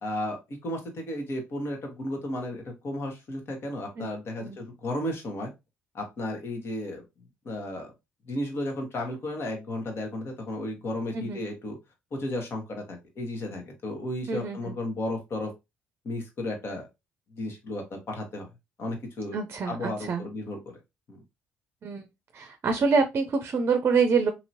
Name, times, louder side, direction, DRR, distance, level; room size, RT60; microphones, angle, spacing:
voice 1, 0.0-5.5 5.9-7.0 7.4-7.9 8.3-11.8 12.1-15.5 16.0-16.9 17.3-18.5 18.8-19.4 19.6-20.6 21.1-21.2, left 1 dB, 50° left, 3 dB, 1.3 m, -33 dB
voice 2, 14.3-14.7 19.3-20.2 21.8-22.1 22.3-24.3, right 5 dB, 50° right, 7 dB, 0.5 m, -26 dB
2.9 x 2.9 x 2.7 m, 0.23 s
supercardioid pair, 65°, 5 cm